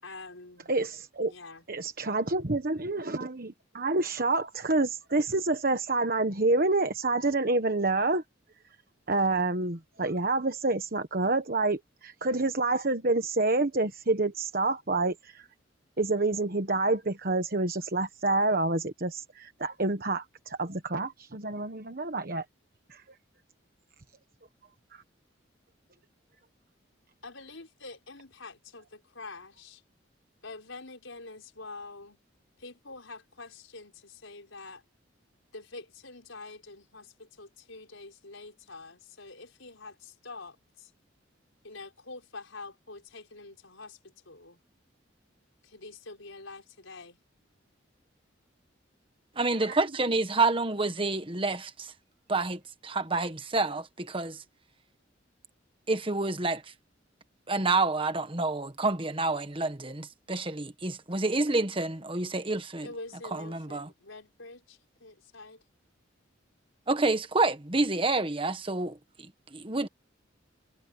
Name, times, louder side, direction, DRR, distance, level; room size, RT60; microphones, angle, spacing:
voice 1, 0.0-0.7 1.3-1.6 27.2-29.8 30.4-32.2 32.6-34.8 35.5-40.9 41.6-44.6 45.6-47.2 49.9-50.0 62.8-65.6, left 3 dB, 85° left, 5.3 m, -46 dB
voice 2, 0.7-1.3 1.7-8.2 9.1-15.5 16.0-22.4 22.9-23.0 24.9-25.0, right 2 dB, 50° right, 1.3 m, -28 dB
voice 3, 49.3-51.9 52.3-54.4 55.9-56.6 57.5-62.9 63.3-63.9 66.9-69.9, right 3 dB, 25° right, 1.4 m, -28 dB
head